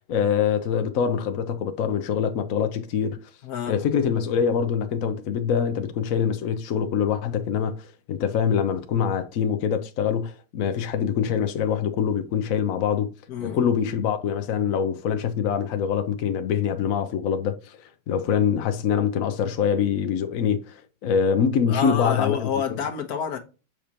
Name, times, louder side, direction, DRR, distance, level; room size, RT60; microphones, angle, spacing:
voice 1, 0.1-3.2 3.7-13.1 13.4-17.8 18.1-22.5, left 7 dB, 75° left, 0.7 m, -24 dB
voice 2, 3.4-3.8 13.3-13.7 21.7-23.4, left 7 dB, 50° left, 1.4 m, -28 dB
7.5 x 5.1 x 2.9 m
omnidirectional pair, 2.4 m